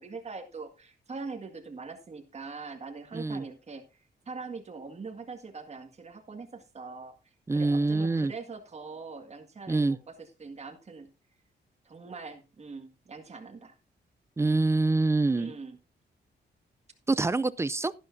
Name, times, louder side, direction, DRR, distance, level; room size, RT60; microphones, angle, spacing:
voice 1, 0.0-7.1 7.5-11.1 11.8-13.8 15.3-15.8, right 4 dB, 35° right, 1.8 m, -42 dB
voice 2, 3.1-3.4 7.5-8.3 9.7-10.0 14.4-15.5 17.1-17.9, right 3 dB, 15° right, 0.4 m, -25 dB
12.0 x 11.0 x 2.6 m
cardioid pair, 120°, 19 cm